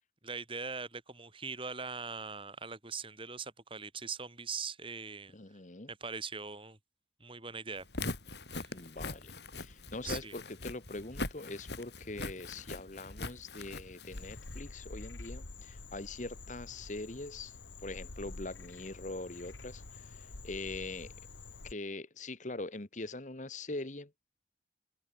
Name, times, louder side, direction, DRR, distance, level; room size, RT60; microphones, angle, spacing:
voice 1, 0.2-5.3 5.9-6.8 7.2-7.8 8.5-8.7 10.0-10.3, right 5 dB, 30° right, 7.0 m, -41 dB
voice 2, 5.3-5.9 8.7-17.6 17.8-21.1 21.6-24.1, left 2 dB, 40° left, 1.4 m, -43 dB
Walk footsteps, 7.8-14.6, left 2 dB, 65° left, 4.6 m, -42 dB
Frog, 14.1-21.7, left 3 dB, 85° left, 1.6 m, -48 dB
head